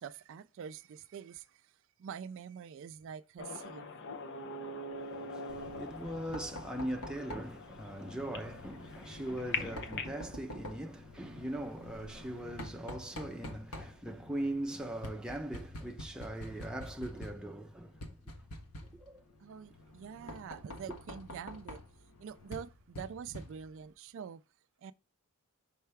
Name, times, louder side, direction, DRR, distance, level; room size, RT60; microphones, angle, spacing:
voice 1, 0.0-1.7 2.0-4.0 19.4-21.8 22.2-24.4 24.8-24.9, right 7 dB, 60° right, 0.3 m, -45 dB
sound 1, 3.4-10.2, left 3 dB, 50° left, 0.7 m, -43 dB
voice 2, 5.1-18.0 18.8-19.2 20.2-20.3, right 1 dB, 5° right, 0.6 m, -40 dB
Knock, 5.5-23.9, left 1 dB, 90° left, 1.2 m, -48 dB
5.6 x 5.5 x 3.4 m
head